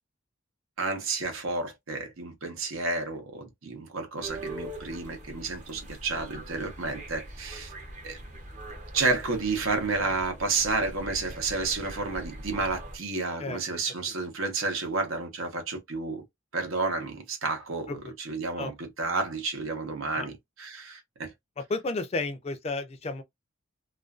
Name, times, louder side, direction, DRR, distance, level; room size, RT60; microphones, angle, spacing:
voice 1, 0.8-7.7 8.0-8.2 8.9-16.2 16.5-20.3 20.6-21.3, right 3 dB, 85° right, 0.8 m, -31 dB
sound 1, 4.2-13.0, right 1 dB, 35° right, 0.6 m, -42 dB
voice 2, 21.6-23.2, left 3 dB, 30° left, 0.3 m, -32 dB
2.4 x 2.2 x 2.3 m
head